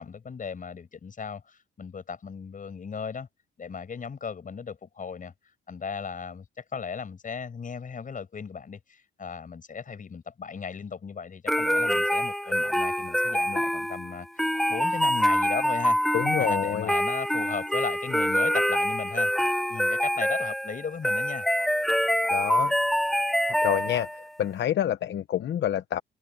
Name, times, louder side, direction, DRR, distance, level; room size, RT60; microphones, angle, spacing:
voice 1, 0.0-3.3 3.6-5.3 5.7-14.3 14.7-16.0 16.4-19.3 19.7-21.5, left 6 dB, 40° left, 6.3 m, -36 dB
sound 1, 11.5-24.3, equal, ahead, 0.9 m, -25 dB
voice 2, 16.1-16.9 22.3-22.7 23.6-26.0, left 11 dB, 65° left, 1.0 m, -28 dB
cardioid pair, 90°, 20 cm